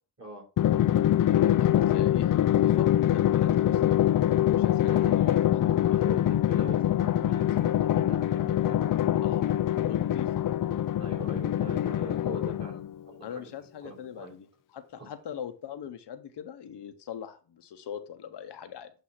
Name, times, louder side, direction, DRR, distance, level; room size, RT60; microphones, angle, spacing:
Drum, 0.6-12.9, left 12 dB, 55° left, 0.4 m, -24 dB
voice 1, 1.6-5.3 5.8-5.9 9.2-9.5 9.8-10.3 13.2-14.5 14.7-18.9, left 9 dB, 80° left, 8 dB, 0.9 m, -41 dB
voice 2, 4.9-7.7 8.1-8.2 8.5-9.2 11.0-13.4 13.8-14.3 15.0-15.1, right 3 dB, 40° right, 0 dB, 3.7 m, -44 dB
8.1 x 2.7 x 5.7 m, 0.34 s
cardioid pair, 70°, 41 cm